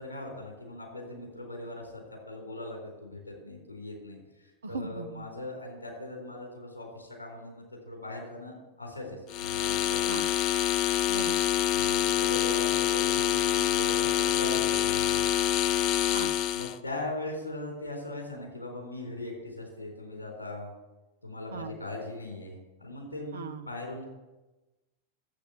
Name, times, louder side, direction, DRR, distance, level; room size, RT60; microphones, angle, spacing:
voice 1, 0.0-10.3 11.7-15.3 16.5-20.7 21.2-24.1, left 2 dB, 75° left, 1 dB, 4.2 m, -40 dB
voice 2, 4.6-5.2 10.1-10.3 11.1-11.4 16.1-16.3 21.5-21.7 23.3-23.7, right 5 dB, 70° right, 9 dB, 0.8 m, -38 dB
sound 1, 9.3-16.8, left 12 dB, 40° left, 0.5 m, -26 dB
11.5 x 8.1 x 8.0 m, 1.1 s
figure-of-eight pair, 90°, 0 cm